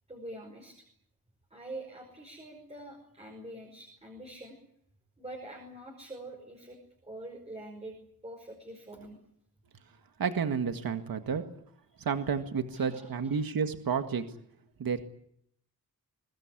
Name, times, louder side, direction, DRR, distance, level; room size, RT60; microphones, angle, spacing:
voice 1, 0.1-0.9 1.5-4.6 5.2-8.0 8.2-9.2 11.9-12.1 12.7-13.4, right 1 dB, 15° right, 1 dB, 5.3 m, -45 dB
voice 2, 10.2-11.4 12.0-14.2 14.8-15.0, right 6 dB, 70° right, 7 dB, 1.9 m, -30 dB
23.5 x 20.5 x 9.9 m, 0.70 s
wide cardioid pair, 180°, 37 cm